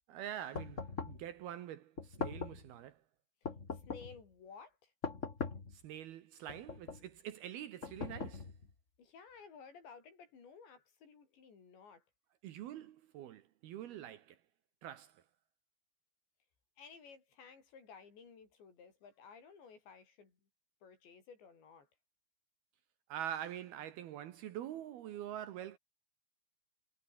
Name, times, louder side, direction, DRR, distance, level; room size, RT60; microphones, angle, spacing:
voice 1, 0.1-3.0 5.7-8.5 12.4-14.4 14.8-15.2 23.1-25.8, right 11 dB, 70° right, 2.7 m, -45 dB
sound 1, 0.5-1.3 2.0-2.7 3.4-4.2 5.0-5.8 6.5-7.1 7.8-8.7, left 4 dB, 40° left, 1.0 m, -41 dB
voice 2, 3.4-4.9 9.0-12.0 16.8-20.4 20.8-21.9, left 5 dB, 70° left, 7.9 m, -56 dB
omnidirectional pair, 5.4 m